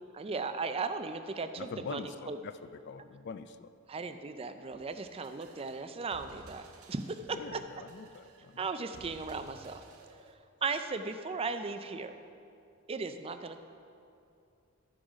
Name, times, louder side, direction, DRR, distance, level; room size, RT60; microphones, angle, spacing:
voice 1, 0.1-2.4 3.9-6.6 6.9-7.6 8.6-9.8 10.6-12.1 12.9-13.6, right 4 dB, 25° right, 9 dB, 0.4 m, -36 dB
voice 2, 1.6-3.7 7.3-8.9, left 5 dB, 50° left, 12 dB, 0.3 m, -44 dB
sound 1, 4.7-10.3, right 2 dB, 80° right, 0.8 m, -56 dB
13.0 x 6.2 x 5.0 m, 2.6 s
head